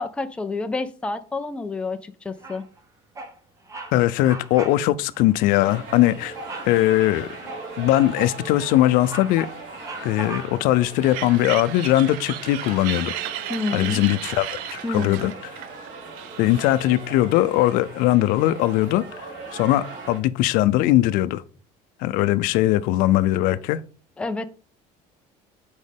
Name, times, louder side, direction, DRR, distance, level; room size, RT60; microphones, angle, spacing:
voice 1, 0.0-2.6 13.5-14.0 14.8-15.3 24.2-24.4, left 3 dB, 5° left, 0.5 m, -29 dB
Bird vocalization bird call bird song, 2.4-2.8 3.1-3.4 3.7-3.9 4.2-4.8 5.1-5.3 6.3-6.8 7.3-8.4 8.8-10.7, right 2 dB, 20° right, 1.1 m, -37 dB
voice 2, 3.9-6.3 6.7-7.3 7.8-9.5 10.0-13.2 13.7-15.3 16.4-21.4 22.0-23.8, left 15 dB, 75° left, 0.5 m, -20 dB
sound 1, 5.6-20.2, right 3 dB, 60° right, 2.9 m, -39 dB
sound 2, 11.0-17.1, right 12 dB, 85° right, 0.6 m, -34 dB
6.3 x 5.1 x 3.5 m
cardioid pair, 155°, 15 cm